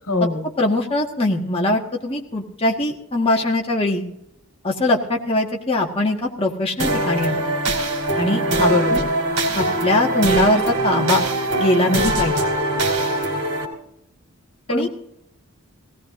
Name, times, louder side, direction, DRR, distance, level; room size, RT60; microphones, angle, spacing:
voice 1, 0.1-0.4 8.6-9.1 14.7-14.9, left 2 dB, 75° left, 4 dB, 1.8 m, -22 dB
voice 2, 0.6-4.0 4.6-7.4 8.2-9.0 9.5-11.2 11.6-12.3 14.7-14.9, left 2 dB, 25° left, -1 dB, 1.7 m, -21 dB
sound 1, 6.8-13.6, right 2 dB, 90° right, 3.3 m, -22 dB
18.5 x 17.5 x 2.6 m, 0.78 s
head